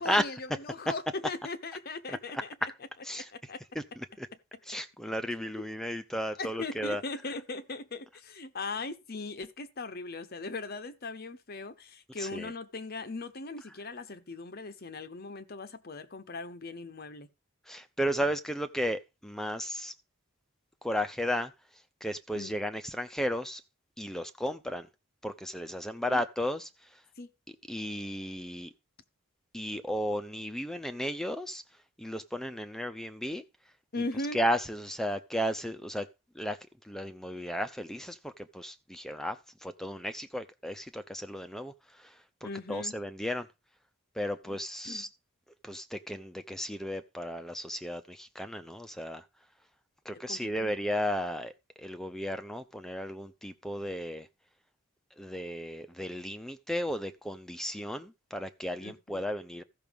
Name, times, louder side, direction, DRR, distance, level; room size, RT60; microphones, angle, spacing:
voice 1, 0.0-2.4 3.3-3.6 5.6-5.7 6.4-17.3 22.3-22.5 26.1-26.2 27.2-27.3 33.9-34.4 42.4-42.9 44.5-44.6 44.8-45.0 50.3-50.8 58.8-59.2, left 3 dB, 45° left, 0.9 m, -39 dB
voice 2, 3.7-4.3 4.7-7.0 12.2-12.5 17.7-19.9 20.8-21.5 22.0-23.6 24.0-24.9 25.2-27.0 27.7-28.7 29.5-31.6 32.0-33.4 34.3-36.1 36.3-36.6 36.8-43.5 44.1-45.1 45.6-49.3 50.0-51.5 51.8-54.3 55.2-59.6, equal, ahead, 0.6 m, -34 dB
14.0 x 6.0 x 5.3 m
head